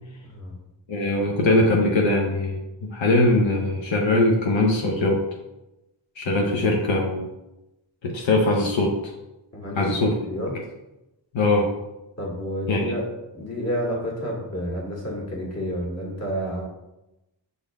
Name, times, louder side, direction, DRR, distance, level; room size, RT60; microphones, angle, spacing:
voice 1, 0.2-0.5 9.5-10.5 12.2-13.0 13.3-16.6, equal, 35° left, -3 dB, 1.9 m, -30 dB
voice 2, 0.9-2.6 2.9-5.2 6.2-7.3 8.0-9.0 9.8-10.1 11.3-11.7 12.7-13.0, left 2 dB, 75° left, 0 dB, 0.9 m, -21 dB
6.8 x 4.1 x 3.5 m, 0.94 s
wide cardioid pair, 120°, 45 cm